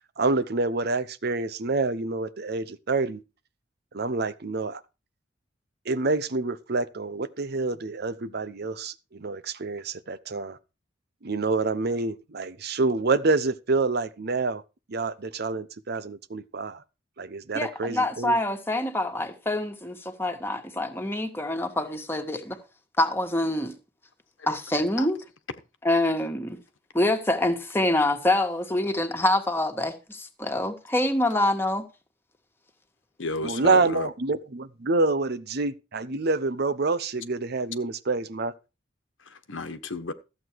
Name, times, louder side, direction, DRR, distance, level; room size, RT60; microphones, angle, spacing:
voice 1, 0.2-3.2 3.9-4.8 5.9-10.6 11.2-14.6 14.9-16.8 17.2-18.4 33.4-38.5, right 3 dB, 55° right, 0.8 m, -27 dB
voice 2, 17.5-22.6 23.0-23.7 24.5-25.2 25.8-26.6 26.9-31.8, left 1 dB, 10° left, 1.7 m, -26 dB
voice 3, 33.2-34.1 39.2-40.1, left 2 dB, 80° left, 1.3 m, -32 dB
14.0 x 8.1 x 4.7 m
head